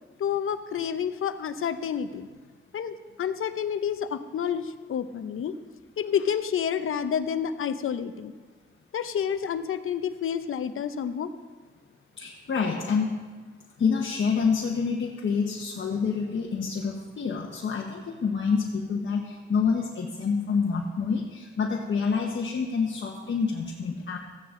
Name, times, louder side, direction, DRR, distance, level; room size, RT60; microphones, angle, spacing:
voice 1, 0.2-2.3 2.7-5.5 6.0-8.3 8.9-11.3, left 8 dB, 75° left, 11 dB, 0.7 m, -29 dB
voice 2, 12.2-13.1 13.8-24.2, left 5 dB, 60° left, 0 dB, 1.1 m, -27 dB
14.0 x 9.6 x 3.8 m, 1.4 s
cardioid pair, 75°, 21 cm